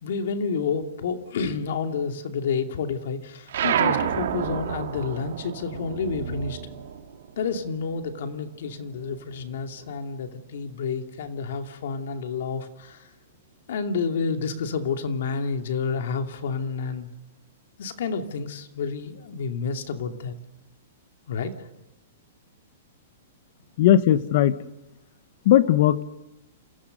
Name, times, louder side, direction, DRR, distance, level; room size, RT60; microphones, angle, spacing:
voice 1, 0.0-6.6 7.4-13.1 13.7-17.1 17.8-20.3 21.3-21.7, left 5 dB, 60° left, 5 dB, 2.5 m, -29 dB
sound 1, 3.5-8.4 8.7-10.1, right 9 dB, 65° right, 3.2 m, -30 dB
voice 2, 23.8-24.5 25.4-26.0, left 11 dB, 45° left, 14 dB, 1.2 m, -18 dB
28.0 x 16.5 x 6.7 m, 0.99 s
hypercardioid pair, 165°, 0 cm